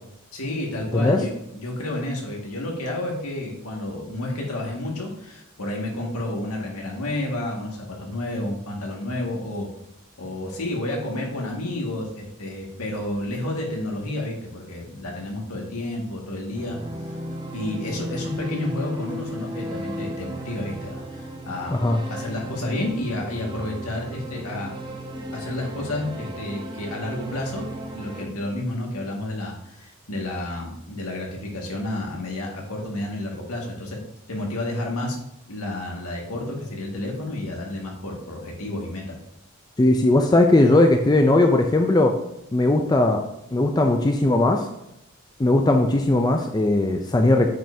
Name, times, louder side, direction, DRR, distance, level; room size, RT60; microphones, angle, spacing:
voice 1, 0.3-9.7 10.2-16.8 17.5-21.8 22.1-24.8 25.3-27.6 27.9-34.0 34.3-35.2 35.5-39.2, left 1 dB, 85° left, -1 dB, 1.9 m, -30 dB
sound 1, 16.5-28.2, right 1 dB, 20° right, 0.7 m, -35 dB
voice 2, 39.8-42.1 42.5-43.2 43.5-44.7 45.4-47.5, left 2 dB, 20° left, 4 dB, 0.4 m, -18 dB
8.9 x 5.4 x 2.7 m, 0.83 s
head